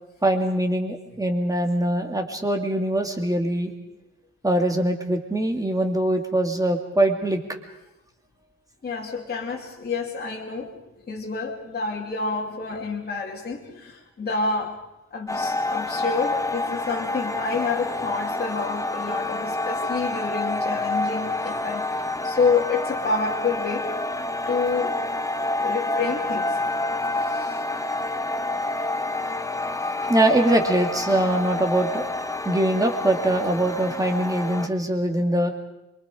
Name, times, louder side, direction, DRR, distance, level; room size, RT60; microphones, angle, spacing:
voice 1, 0.2-3.7 4.4-7.4 30.1-32.0 32.4-35.5, right 1 dB, 10° right, 3 dB, 2.2 m, -22 dB
voice 2, 8.8-10.7 11.1-14.8 15.1-23.9 24.5-24.9 25.6-26.6 27.2-27.6 30.0-30.1, left 4 dB, 30° left, -3 dB, 2.7 m, -28 dB
sound 1, 15.3-34.7, left 2 dB, 10° left, 0.8 m, -28 dB
27.5 x 23.5 x 5.0 m, 0.95 s
wide cardioid pair, 160°, 32 cm